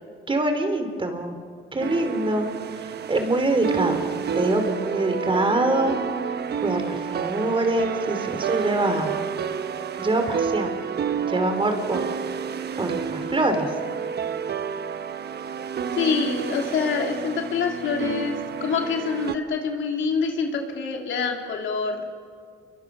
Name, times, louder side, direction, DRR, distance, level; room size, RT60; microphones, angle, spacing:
voice 1, 0.3-1.4 1.7-2.5 2.8-4.0 4.3-6.0 6.3-9.1 10.0-10.8 11.3-12.1 12.8-13.7, right 2 dB, 25° right, 6 dB, 3.0 m, -24 dB
sound 1, 1.8-19.4, right 7 dB, 55° right, 1.1 m, -30 dB
voice 2, 15.9-22.0, left 5 dB, 70° left, 2 dB, 3.1 m, -26 dB
29.0 x 23.0 x 6.0 m, 2.2 s
cardioid pair, 90°, 20 cm